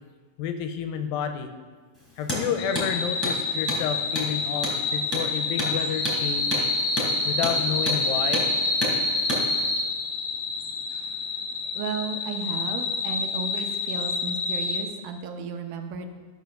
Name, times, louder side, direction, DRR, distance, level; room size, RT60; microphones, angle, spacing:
voice 1, 0.4-1.5 2.2-6.7 7.3-8.4, left 8 dB, 90° left, 7 dB, 2.4 m, -30 dB
Hammer, 2.2-2.4 2.7-2.9 3.2-3.4 3.7-3.8 4.1-4.3 4.6-4.8 5.1-5.3 5.6-5.7 6.0-6.2 6.5-6.6 7.0-7.1 7.4-7.6 7.9-8.0 8.3-8.5 8.8-9.0 9.3-9.4, equal, 5° left, 2.7 m, -29 dB
sound 1, 2.6-14.8, left 3 dB, 60° left, 1.9 m, -28 dB
voice 2, 11.7-16.1, right 5 dB, 85° right, 5 dB, 2.7 m, -34 dB
13.0 x 5.1 x 6.5 m, 1.4 s
omnidirectional pair, 4.2 m